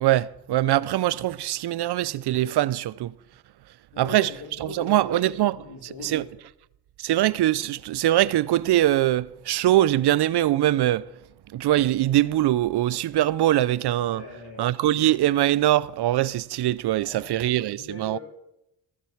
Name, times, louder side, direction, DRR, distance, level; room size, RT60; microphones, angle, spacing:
voice 1, 0.0-3.1 4.0-4.3 4.6-6.2 7.0-11.1 11.5-14.2 14.6-18.2, right 14 dB, 75° right, 0.5 m, -22 dB
voice 2, 3.9-5.3 5.6-6.2 14.0-14.6 17.0-17.5 17.8-18.2, left 4 dB, 80° left, 2.3 m, -41 dB
13.5 x 7.6 x 7.1 m
cardioid pair, 90°, 40 cm